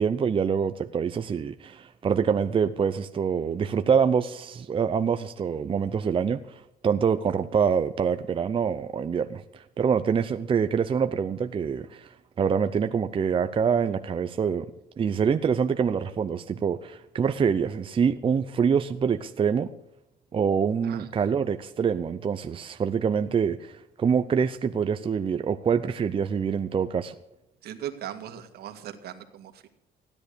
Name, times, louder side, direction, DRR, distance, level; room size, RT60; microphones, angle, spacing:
voice 1, 0.0-14.7 15.0-19.7 20.3-27.1, right 6 dB, 30° right, 9 dB, 0.7 m, -25 dB
voice 2, 27.6-29.7, right 10 dB, 70° right, 7 dB, 1.9 m, -38 dB
16.0 x 10.5 x 6.8 m, 0.84 s
cardioid pair, 110°, 17 cm